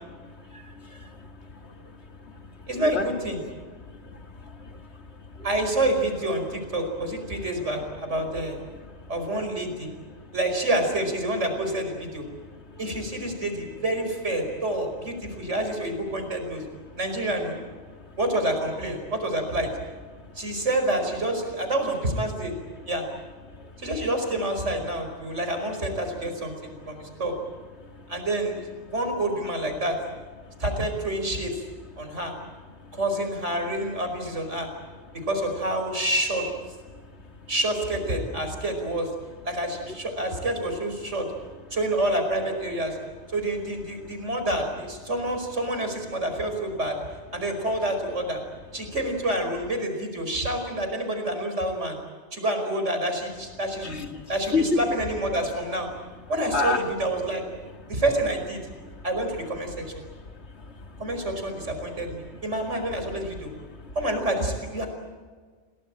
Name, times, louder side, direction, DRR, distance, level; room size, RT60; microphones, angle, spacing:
voice 1, 0.2-3.0 3.8-5.5 7.8-7.9 8.7-9.2 10.1-10.4 12.3-12.9 15.3-15.5 16.9-17.0 17.9-18.2 20.1-20.6 22.8-22.9 23.4-23.9 25.2-25.4 26.8-27.2 27.8-28.1 30.4-30.6 32.0-32.2 32.7-33.0 35.1-35.3 36.9-37.5 43.9-44.3 53.8-54.8 56.5-56.8 57.7-58.0 58.8-59.0 60.0-61.2 61.6-61.7 62.0-62.7 63.7-64.0, left 3 dB, 65° left, 5 dB, 2.4 m, -35 dB
voice 2, 2.7-3.4 5.4-8.6 9.1-9.9 10.3-12.3 12.8-16.6 17.0-17.6 18.2-19.7 20.4-22.5 22.9-23.0 23.8-27.4 28.1-30.0 30.6-31.5 32.0-32.3 32.9-34.7 35.3-36.5 37.5-39.1 39.4-41.3 41.7-43.0 43.3-47.0 47.3-48.4 48.7-52.0 52.3-53.9 54.3-55.9 56.3-57.4 57.9-58.7 59.0-59.8 61.0-63.5 64.0-64.9, right 1 dB, 85° right, 5 dB, 5.4 m, -28 dB
28.5 x 19.0 x 9.0 m, 1.5 s
omnidirectional pair, 1.2 m